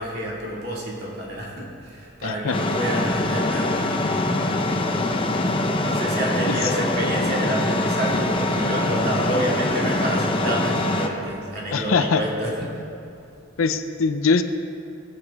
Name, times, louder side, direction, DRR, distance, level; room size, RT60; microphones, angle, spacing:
voice 1, 0.0-4.0 5.6-12.8, right 1 dB, 50° right, -4 dB, 2.4 m, -29 dB
voice 2, 2.2-2.6 11.7-12.2 13.6-14.4, left 4 dB, 70° left, 8 dB, 0.6 m, -21 dB
sound 1, 2.5-11.1, left 2 dB, 25° left, 0.7 m, -23 dB
17.5 x 8.1 x 3.6 m, 2.7 s
head